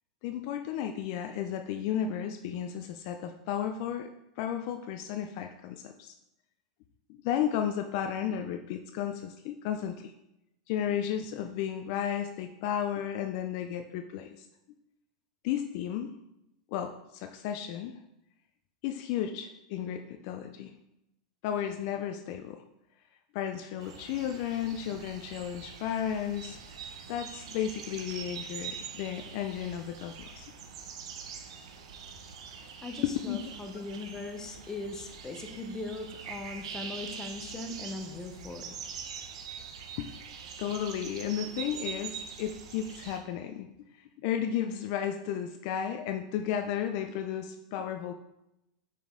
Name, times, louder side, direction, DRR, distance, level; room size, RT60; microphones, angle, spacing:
voice 1, 0.2-4.1 4.4-6.1 7.2-10.1 10.7-14.5 15.4-16.1 16.7-17.9 18.8-20.7 21.4-22.6 23.3-30.5 33.0-33.4 40.0-40.1 40.6-43.7 43.9-48.1, left 9 dB, 55° left, 6 dB, 0.4 m, -33 dB
sound 1, 23.8-43.2, right 7 dB, 80° right, 0.8 m, -44 dB
voice 2, 32.8-38.8, left 2 dB, 15° left, 5 dB, 0.8 m, -40 dB
5.4 x 5.2 x 3.7 m, 0.87 s
supercardioid pair, 135°, 3 cm